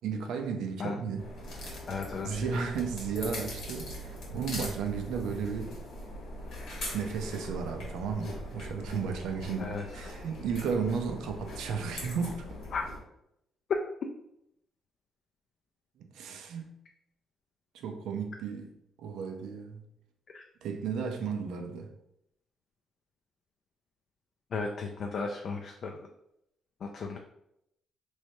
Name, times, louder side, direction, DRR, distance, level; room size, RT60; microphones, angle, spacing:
voice 1, 0.0-1.2 2.2-5.8 6.9-12.5 16.1-16.8 17.7-18.7 19.0-19.8 20.6-21.9, right 6 dB, 85° right, 0.5 m, -34 dB
sound 1, 1.2-13.0, left 1 dB, 80° left, 1.2 m, -41 dB
voice 2, 1.9-2.5 9.6-9.8 12.7-12.9 20.3-20.4 24.5-26.1 26.8-27.2, left 4 dB, 55° left, 0.3 m, -35 dB
3.2 x 3.1 x 2.7 m
cardioid pair, 90°, 0 cm